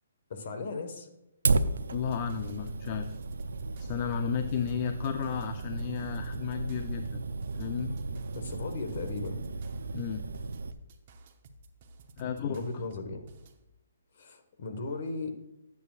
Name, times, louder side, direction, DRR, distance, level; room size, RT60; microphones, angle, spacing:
voice 1, 0.3-1.1 8.3-9.4 12.4-13.3 14.2-15.3, left 3 dB, 55° left, 6 dB, 1.4 m, -36 dB
Fire, 1.4-10.7, right 3 dB, 80° right, 0.5 m, -34 dB
voice 2, 1.9-3.2 3.8-7.2 7.6-7.9 9.9-10.2 12.2-12.8, left 7 dB, 35° left, 8 dB, 0.5 m, -33 dB
sound 1, 1.9-13.6, right 2 dB, 40° right, 0.9 m, -55 dB
12.0 x 8.4 x 2.5 m, 0.90 s
hypercardioid pair, 150°, 0 cm